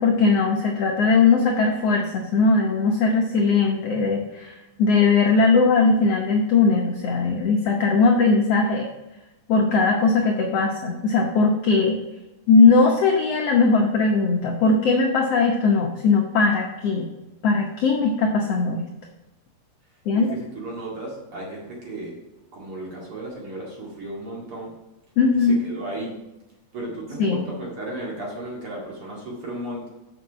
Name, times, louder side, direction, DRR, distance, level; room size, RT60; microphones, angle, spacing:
voice 1, 0.0-8.9 9.5-12.0 12.5-17.0 17.4-18.9 20.1-20.3 25.2-25.6 27.2-27.5, left 4 dB, 75° left, 1 dB, 1.4 m, -19 dB
voice 2, 20.2-22.1 22.5-24.7 25.4-26.1 26.7-29.9, right 1 dB, 45° right, -3 dB, 2.7 m, -34 dB
7.0 x 6.4 x 6.0 m, 0.99 s
omnidirectional pair, 3.9 m